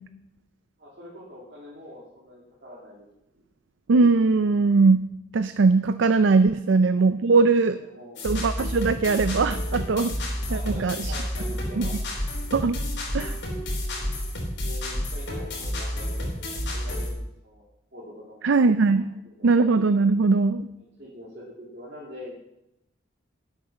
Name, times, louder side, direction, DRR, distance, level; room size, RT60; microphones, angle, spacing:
voice 1, 0.8-3.1 3.3-3.4 6.7-6.8 7.9-8.2 10.5-11.9 14.6-16.3 16.7-17.6 17.9-18.4 18.9-19.5 21.0-22.3, left 1 dB, 55° right, -7 dB, 2.8 m, -44 dB
voice 2, 3.9-5.0 5.3-7.8 8.2-10.1 10.5-11.1 11.8-11.9 12.5-12.8 13.1-13.4 18.4-19.1 19.4-20.7, right 4 dB, 80° right, 11 dB, 0.5 m, -20 dB
sound 1, 8.2-17.1, left 1 dB, 70° left, 3.5 m, -30 dB
11.5 x 8.3 x 5.8 m, 0.85 s
head